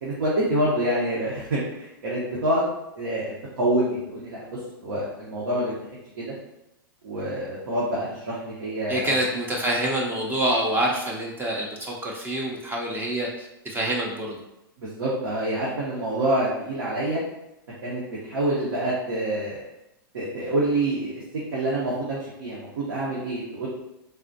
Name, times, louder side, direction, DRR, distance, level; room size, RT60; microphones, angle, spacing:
voice 1, 0.0-2.7 2.9-4.4 4.8-5.7 6.2-6.3 7.0-9.1 14.8-17.2 17.8-19.6 20.1-21.2 21.5-23.7, right 1 dB, 80° right, -7 dB, 0.9 m, -26 dB
voice 2, 8.9-14.4, right 1 dB, 15° right, -2 dB, 0.5 m, -26 dB
3.5 x 2.4 x 2.6 m, 0.88 s
hypercardioid pair, 110°, 12 cm